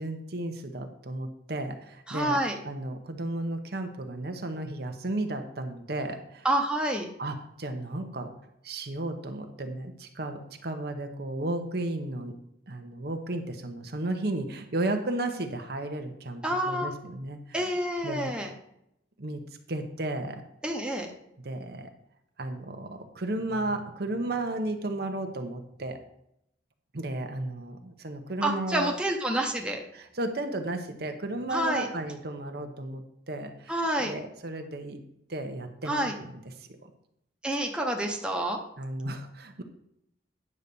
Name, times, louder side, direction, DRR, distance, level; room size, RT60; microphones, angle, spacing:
voice 1, 0.0-6.5 7.2-8.3 8.6-12.4 12.7-17.7 18.0-18.3 19.2-19.4 19.7-20.4 21.4-21.9 22.4-26.0 26.9-28.9 29.9-35.0 35.3-36.3 36.8-36.9 38.8-39.6, right 2 dB, 60° right, 5 dB, 0.9 m, -34 dB
voice 2, 2.1-2.6 6.4-7.1 16.4-16.9 17.5-18.5 20.6-21.1 28.4-29.8 31.5-31.9 33.7-34.1 35.9-36.1 37.4-38.6, right 1 dB, 5° right, 1 dB, 0.9 m, -28 dB
9.7 x 4.0 x 6.9 m, 0.77 s
head